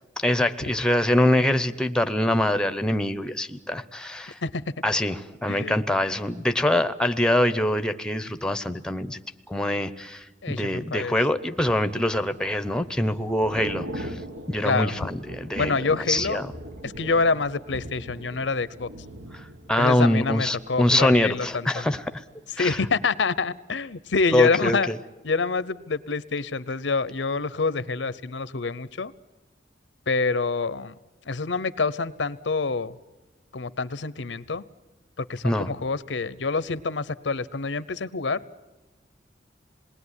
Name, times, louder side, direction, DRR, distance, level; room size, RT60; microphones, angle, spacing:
voice 1, 0.2-4.4 4.8-9.2 9.5-14.1 14.5-15.7 16.1-16.5 19.7-22.0 22.6-22.8 24.3-25.0 35.4-35.7, left 1 dB, 5° left, 10 dB, 0.8 m, -24 dB
voice 2, 10.4-11.2 14.6-14.9 15.6-16.4 16.8-18.9 19.8-21.9 22.6-24.9 25.2-29.1 30.1-31.0 31.3-32.9 33.5-34.6 35.2-38.4, left 4 dB, 80° left, 16 dB, 0.8 m, -26 dB
Thunder / Rain, 11.6-21.6 21.9-22.2, equal, 75° right, 1.8 m, -40 dB
27.0 x 20.0 x 9.8 m, 1.2 s
head